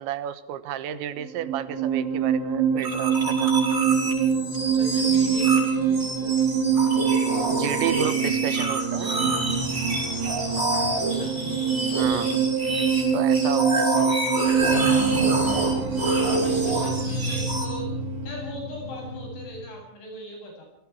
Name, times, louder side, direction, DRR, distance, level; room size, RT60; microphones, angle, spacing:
voice 1, 0.0-3.5 7.5-9.1 11.9-12.4 13.1-14.2, right 11 dB, 75° right, 12 dB, 3.4 m, -31 dB
sound 1, 1.2-19.7, right 6 dB, 60° right, 6.0 m, -25 dB
sound 2, 2.8-17.7, right 1 dB, 15° right, 7.0 m, -28 dB
voice 2, 4.6-6.4 10.9-12.2 12.5-12.7 14.6-15.6 16.1-17.9 18.2-20.6, equal, 80° left, 1 dB, 10.5 m, -40 dB
29.0 x 20.0 x 4.7 m, 0.75 s
omnidirectional pair, 5.4 m